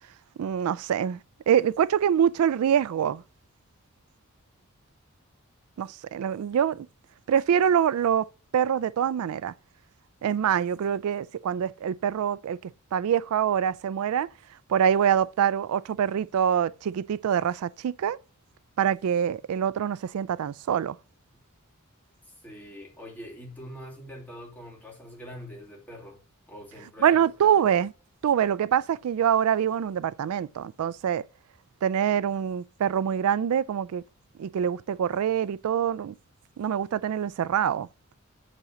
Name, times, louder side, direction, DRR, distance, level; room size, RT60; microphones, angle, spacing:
voice 1, 0.4-1.2 1.5-3.2 5.8-6.9 7.3-8.3 8.5-9.5 10.2-12.6 12.9-14.3 14.7-18.2 18.8-20.9 27.0-27.9 28.2-31.2 31.8-34.0 34.4-36.1 36.6-37.9, right 8 dB, 80° right, 0.3 m, -25 dB
voice 2, 22.4-27.3, equal, 10° left, 2.6 m, -43 dB
8.1 x 4.2 x 5.0 m
head